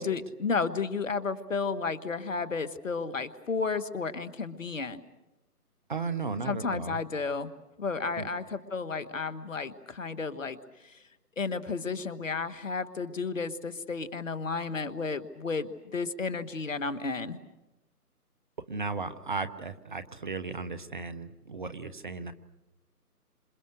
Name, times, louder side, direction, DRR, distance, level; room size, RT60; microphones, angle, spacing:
voice 1, 0.0-5.0 6.4-7.5 7.8-11.0 11.4-17.4, left 4 dB, 55° left, 13 dB, 1.6 m, -32 dB
voice 2, 5.9-7.0 8.2-8.3 18.7-22.3, right 4 dB, 30° right, 13 dB, 0.9 m, -35 dB
28.5 x 27.0 x 6.5 m, 0.99 s
figure-of-eight pair, 150°, 47 cm